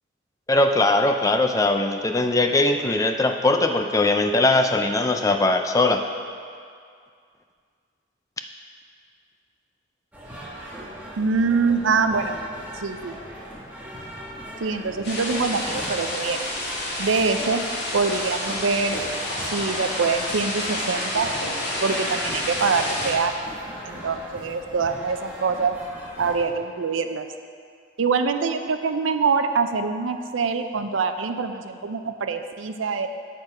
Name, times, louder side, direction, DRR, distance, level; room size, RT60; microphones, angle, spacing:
voice 1, 0.5-6.0, left 2 dB, 15° left, 5 dB, 0.3 m, -20 dB
sound 1, 10.1-26.4, equal, 10° right, 1.2 m, -39 dB
voice 2, 11.2-12.4 12.8-13.2 14.6-16.4 17.0-17.6 17.9-19.0 19.5-21.3 21.8-23.5 23.9-25.8 26.2-27.3 28.0-33.1, right 4 dB, 80° right, 8 dB, 0.5 m, -24 dB
sound 2, 15.0-23.1, left 1 dB, 55° left, 1.8 m, -29 dB
7.9 x 6.7 x 4.8 m, 2.2 s
head